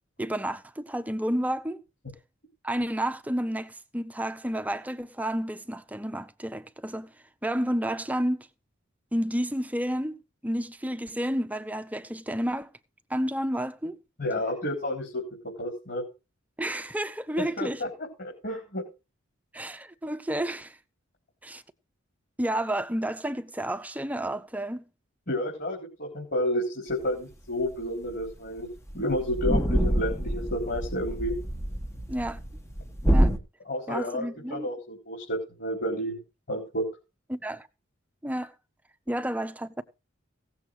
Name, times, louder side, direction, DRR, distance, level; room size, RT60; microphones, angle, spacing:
voice 1, 0.2-1.8 2.6-7.1 7.4-8.5 9.1-10.2 10.4-12.7 13.1-14.0 16.6-17.8 19.5-20.8 21.4-21.6 22.4-24.8 32.1-32.4 33.1-33.3 33.9-34.7 37.3-37.7 38.2-38.5 39.1-39.8, right 1 dB, 10° right, 0.8 m, -30 dB
voice 2, 14.2-15.2 15.6-16.0 17.6-17.9 18.2-18.8 25.3-28.7 28.9-31.4 33.7-36.2 36.5-36.9, equal, 50° left, 3.9 m, -30 dB
sound 1, 27.7-27.8 28.1-28.3 28.6-28.7 28.9-33.4, equal, 15° left, 1.4 m, -26 dB
16.5 x 7.2 x 4.8 m
head